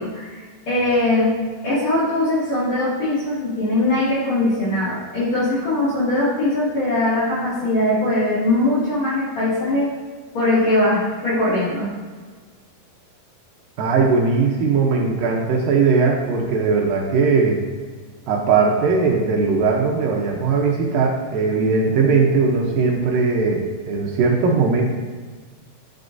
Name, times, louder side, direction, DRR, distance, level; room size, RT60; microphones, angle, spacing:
voice 1, 0.0-1.3 1.6-9.9 10.3-11.9, left 1 dB, 45° left, -11 dB, 3.0 m, -21 dB
voice 2, 13.8-17.6 18.3-24.8, right 4 dB, 75° right, -1 dB, 2.1 m, -19 dB
10.5 x 6.5 x 2.6 m, 1.5 s
omnidirectional pair, 4.8 m